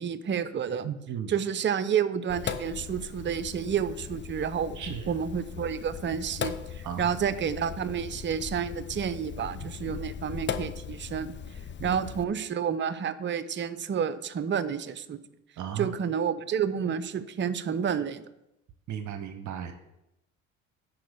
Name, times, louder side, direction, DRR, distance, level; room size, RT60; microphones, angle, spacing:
voice 1, 0.0-0.9 1.3-11.3 11.8-15.2 15.8-18.2, right 7 dB, 30° right, 14 dB, 0.7 m, -30 dB
voice 2, 0.8-1.4 4.7-5.1 6.8-7.1 11.8-11.9 15.6-15.9 18.9-19.7, right 9 dB, 50° right, 8 dB, 1.0 m, -35 dB
Sink (filling or washing), 2.3-12.2, left 7 dB, 30° left, 0.7 m, -38 dB
10.5 x 4.3 x 6.5 m, 0.87 s
hypercardioid pair, 60°, 40 cm